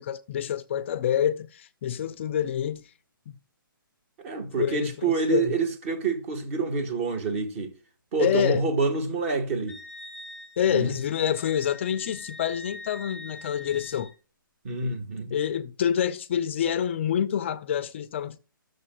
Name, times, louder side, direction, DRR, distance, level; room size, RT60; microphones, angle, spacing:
voice 1, 0.0-2.8 3.3-3.4 4.6-5.5 8.2-8.6 10.6-14.1 15.3-18.4, left 9 dB, 35° left, 0.4 m, -27 dB
voice 2, 4.2-7.7 8.1-9.8 10.7-10.9 14.6-15.3, right 4 dB, 35° right, 1.3 m, -27 dB
Wind instrument woodwind instrument, 9.7-14.1, left 2 dB, 80° right, 3.7 m, -44 dB
14.5 x 6.5 x 2.2 m
hypercardioid pair, 155°, 12 cm